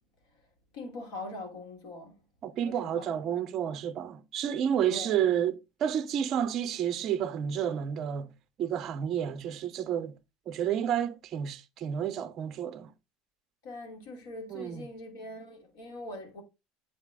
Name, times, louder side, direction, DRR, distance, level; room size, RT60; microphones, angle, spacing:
voice 1, 0.7-2.1 2.6-3.1 4.9-5.2 13.6-16.4, left 1 dB, 80° left, 2.9 m, -42 dB
voice 2, 2.4-8.3 8.6-10.1 10.5-12.9 14.5-14.9, right 9 dB, 35° right, 0.6 m, -30 dB
8.1 x 4.3 x 3.5 m
cardioid pair, 165°, 0 cm